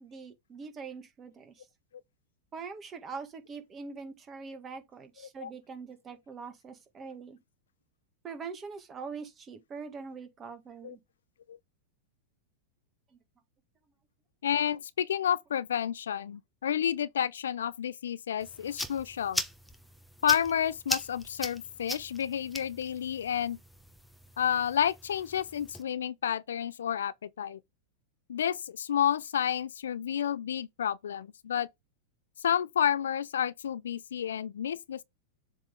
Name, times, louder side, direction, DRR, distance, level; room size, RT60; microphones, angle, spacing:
voice 1, 0.0-1.7 2.5-7.4 8.2-11.0 13.1-13.2, right 5 dB, 25° right, 1.7 m, -43 dB
voice 2, 14.4-19.4 20.2-23.6 24.4-27.6 28.3-31.7 32.4-35.0, left 9 dB, 70° left, 0.4 m, -30 dB
sound 1, 18.4-25.8, left 1 dB, ahead, 0.9 m, -40 dB
7.4 x 3.6 x 3.6 m
figure-of-eight pair, 95°, 0 cm